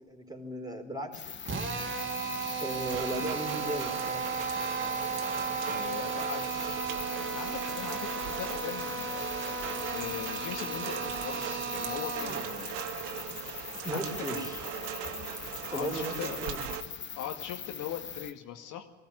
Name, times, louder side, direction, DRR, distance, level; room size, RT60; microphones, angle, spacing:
voice 1, 0.0-1.7 2.6-4.3 13.8-14.6 15.7-16.7, right 1 dB, 10° right, 3 dB, 4.6 m, -36 dB
sound 1, 1.1-18.3, left 7 dB, 30° left, 1.7 m, -42 dB
Drill, 1.5-12.5, right 5 dB, 30° right, 2.4 m, -35 dB
Rain, 2.9-16.8, right 10 dB, 70° right, 1.6 m, -39 dB
voice 2, 5.7-6.6 7.1-9.3 9.9-13.0 13.9-14.4 15.7-16.4 17.2-18.8, left 10 dB, 55° left, 3 dB, 2.2 m, -40 dB
20.0 x 16.0 x 9.9 m, 1.1 s
hypercardioid pair, 80°, 36 cm